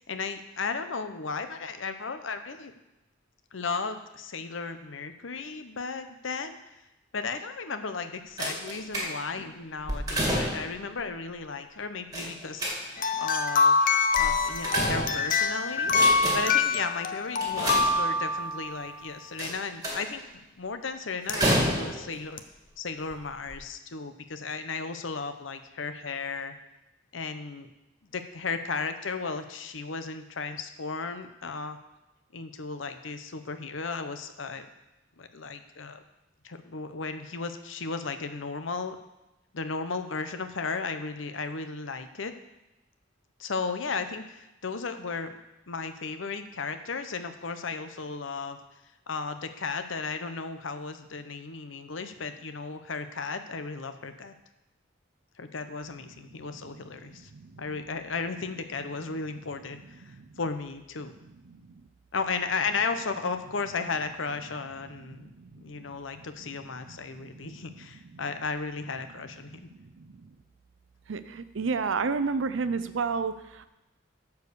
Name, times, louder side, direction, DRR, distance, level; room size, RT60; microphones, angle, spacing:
voice 1, 0.0-2.7 3.5-6.6 7.1-13.8 14.1-20.2 20.5-22.4 22.8-26.5 27.1-27.7 28.1-31.8 32.3-34.7 35.2-36.0 36.4-39.0 39.5-42.3 43.4-45.4 45.7-48.6 49.1-54.3 55.4-57.3 57.6-61.1 62.1-65.3 65.6-69.5, left 4 dB, 80° left, 9 dB, 0.8 m, -35 dB
sound 1, 8.4-9.4 9.8-10.8 12.1-13.1 14.2-15.4 15.8-16.6 17.4-18.4 19.4-20.2 21.3-22.2 23.0-23.1 23.5-23.6, equal, 20° right, 2.1 m, -29 dB
sound 2, 13.0-18.9 21.3-21.4 22.4-22.5, left 4 dB, 45° left, 0.6 m, -25 dB
voice 2, 65.2-65.9 67.2-67.6 69.8-70.1 71.1-73.7, right 4 dB, 75° right, 12 dB, 0.6 m, -31 dB
11.5 x 4.8 x 6.8 m, 0.96 s
head